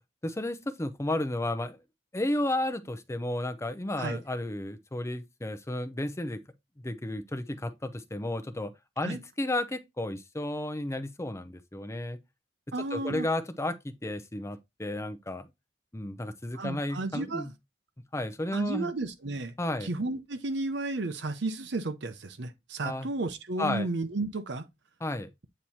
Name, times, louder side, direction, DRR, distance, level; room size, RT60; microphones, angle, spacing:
voice 1, 0.2-1.8 2.1-6.4 6.8-12.2 12.9-15.5 15.9-17.5 18.1-18.9 19.6-19.9 22.8-23.1 23.6-23.9 25.0-25.3, left 1 dB, 15° left, 0.6 m, -33 dB
voice 2, 12.7-13.3 16.5-17.5 18.5-19.5 19.8-24.7, right 2 dB, 65° right, 0.7 m, -33 dB
8.8 x 3.1 x 4.2 m
head